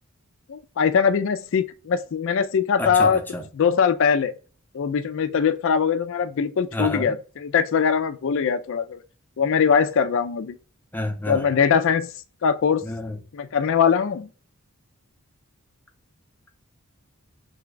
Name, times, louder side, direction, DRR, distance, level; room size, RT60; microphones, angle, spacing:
voice 1, 0.5-3.2 3.6-4.3 4.7-9.0 9.4-10.6 11.3-12.1 12.4-12.8 13.3-14.3, left 6 dB, 60° left, 0.4 m, -21 dB
voice 2, 2.8-3.4 6.7-7.1 10.9-11.5 12.8-13.2, left 1 dB, 10° left, 0.6 m, -29 dB
3.3 x 2.3 x 3.8 m
head